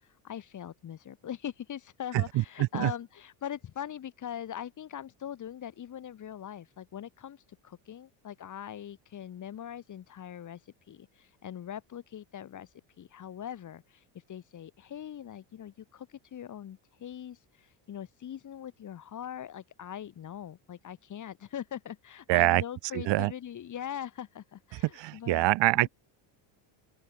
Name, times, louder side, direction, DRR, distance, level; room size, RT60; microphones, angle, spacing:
voice 1, 0.0-10.6 10.9-12.7 13.0-25.9, left 10 dB, 35° left, 6.5 m, -42 dB
voice 2, 2.1-2.9 22.3-22.6 22.9-23.3 24.7-25.9, right 18 dB, 55° right, 2.0 m, -25 dB
open air
cardioid pair, 160°, 50 cm